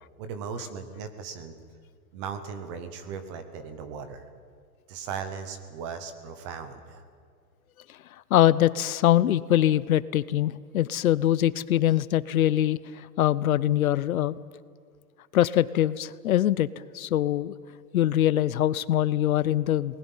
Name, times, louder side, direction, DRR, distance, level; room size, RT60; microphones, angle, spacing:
voice 1, 0.2-1.5 2.1-4.2 4.9-7.0, right 6 dB, 20° right, 9 dB, 0.8 m, -37 dB
voice 2, 8.3-14.3 15.3-16.7 16.9-17.5 17.9-20.0, left 12 dB, 60° left, 18 dB, 0.6 m, -23 dB
29.5 x 20.0 x 5.6 m, 2.2 s
hypercardioid pair, 170°, 49 cm